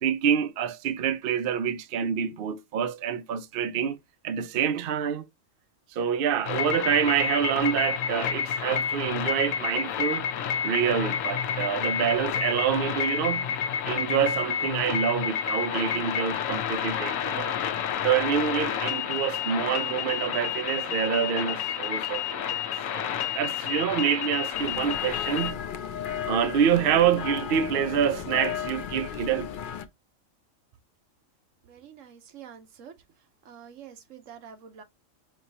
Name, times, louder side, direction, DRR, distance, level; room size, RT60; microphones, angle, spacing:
voice 1, 0.0-4.0 4.2-5.2 5.9-10.3 10.6-13.5 13.9-17.5 18.0-22.6 22.9-25.6 26.2-29.5, right 8 dB, 60° right, 0.7 m, -27 dB
sound 1, 6.4-25.5, left 8 dB, 85° left, 1.1 m, -30 dB
sound 2, 24.5-29.9, left 8 dB, 60° left, 0.5 m, -34 dB
voice 2, 31.6-32.9 33.4-34.8, right 8 dB, 80° right, 1.2 m, -47 dB
5.3 x 3.0 x 2.7 m
omnidirectional pair, 1.3 m